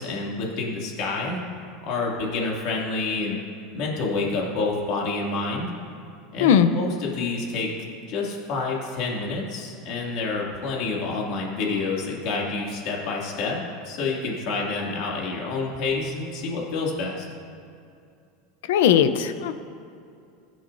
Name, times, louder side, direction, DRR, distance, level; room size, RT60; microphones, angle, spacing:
voice 1, 0.0-1.4 1.8-3.4 3.7-5.7 6.3-7.7 8.1-17.3, left 3 dB, 45° left, -3 dB, 2.6 m, -28 dB
voice 2, 18.7-19.5, left 9 dB, 85° left, 11 dB, 0.7 m, -18 dB
21.0 x 11.0 x 2.7 m, 2.5 s
supercardioid pair, 170°, 0 cm